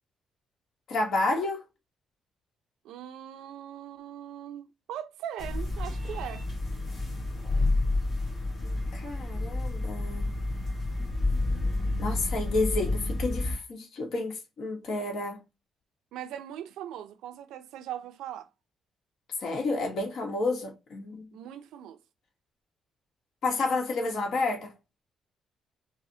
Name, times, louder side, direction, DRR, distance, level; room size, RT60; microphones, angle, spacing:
voice 1, 0.9-1.6 8.6-10.3 12.0-15.4 19.4-21.2 23.4-24.7, left 3 dB, 65° left, 1.0 m, -30 dB
voice 2, 2.8-6.4 16.1-18.5 21.3-22.0, right 10 dB, 90° right, 0.4 m, -40 dB
sound 1, 5.4-13.5, left 2 dB, 45° left, 2.1 m, -30 dB
4.8 x 2.0 x 2.7 m
cardioid pair, 90°, 0 cm